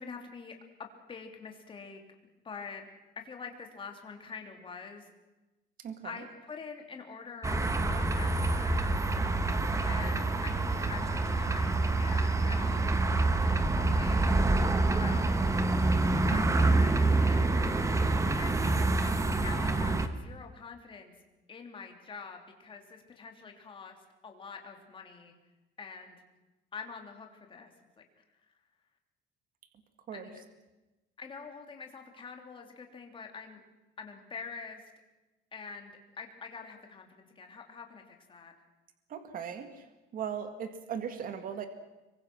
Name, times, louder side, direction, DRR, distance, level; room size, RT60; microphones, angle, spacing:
voice 1, 0.0-2.0 2.4-2.9 3.1-5.1 6.0-8.8 9.9-12.9 13.4-14.4 14.9-15.5 16.3-17.6 18.4-19.1 19.4-21.1 21.5-24.0 24.2-25.3 25.8-26.2 26.7-27.7 28.2-28.3 30.1-30.4 31.2-33.6 34.0-34.9 35.5-38.5, left 5 dB, 25° left, 3 dB, 3.1 m, -45 dB
voice 2, 5.8-6.2 16.2-16.6 30.1-30.3 39.1-41.7, right 7 dB, 40° right, 8 dB, 1.9 m, -38 dB
sound 1, 7.4-20.1, right 2 dB, 15° right, 1.2 m, -27 dB
26.5 x 23.5 x 6.1 m, 1.1 s
cardioid pair, 175°, 21 cm